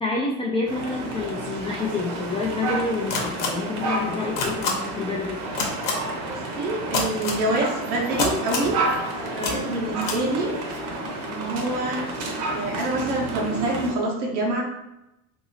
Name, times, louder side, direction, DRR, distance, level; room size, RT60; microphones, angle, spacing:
voice 1, 0.0-5.4, left 3 dB, 15° left, -2 dB, 0.4 m, -28 dB
sound 1, 0.7-13.9, right 2 dB, 45° right, 0.8 m, -30 dB
sound 2, 3.1-3.5 4.4-4.7 5.6-5.9 6.9-7.4 8.2-8.7 9.4-9.5 10.0-10.2, left 5 dB, 60° left, 1.0 m, -25 dB
voice 2, 6.3-8.8 9.2-10.5 11.2-12.1 12.5-14.6, right 2 dB, 85° right, -3 dB, 1.0 m, -26 dB
2.8 x 2.7 x 2.7 m, 0.89 s
hypercardioid pair, 85°, 43 cm